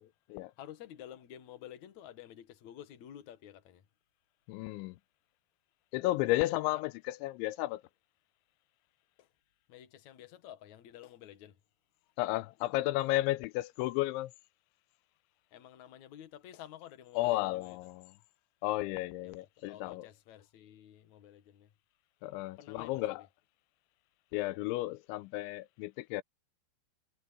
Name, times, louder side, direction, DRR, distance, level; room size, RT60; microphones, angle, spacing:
voice 1, 0.6-3.9 6.7-6.8 9.2-9.3 9.7-11.6 15.5-17.8 19.2-21.7 22.6-23.0, left 11 dB, 55° left, 2.2 m, -51 dB
voice 2, 4.5-5.0 5.9-7.8 12.2-14.3 17.2-18.1 18.6-20.0 22.2-23.2 24.3-26.2, left 18 dB, 90° left, 3.0 m, -33 dB
omnidirectional pair, 5.3 m